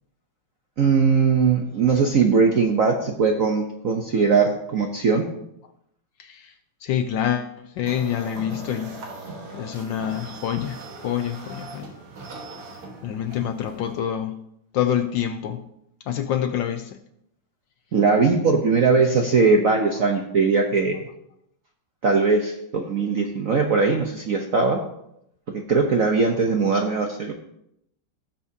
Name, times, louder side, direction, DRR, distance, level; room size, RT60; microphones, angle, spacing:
voice 1, 0.8-5.3 17.9-21.0 22.0-24.8 25.7-27.3, right 4 dB, 60° right, 2 dB, 0.9 m, -20 dB
voice 2, 6.2-6.5 6.8-9.0 9.5-11.9 13.0-14.4 14.7-15.6 16.1-17.0 20.0-20.1, left 9 dB, 75° left, 8 dB, 1.2 m, -27 dB
sound 1, 7.8-14.0, right 2 dB, 80° right, 2.4 m, -40 dB
17.5 x 7.1 x 2.8 m, 0.77 s
omnidirectional pair, 2.4 m